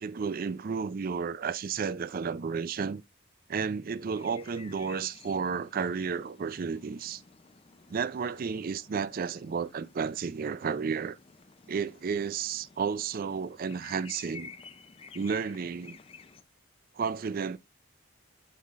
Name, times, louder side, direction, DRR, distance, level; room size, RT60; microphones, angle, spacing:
voice 1, 0.0-3.0 3.5-7.2 7.9-11.2 11.7-14.5 15.1-16.0 17.0-17.6, right 6 dB, 45° right, 0.4 m, -32 dB
sound 1, 4.1-16.4, left 5 dB, 25° left, 0.4 m, -53 dB
8.6 x 5.7 x 2.4 m
head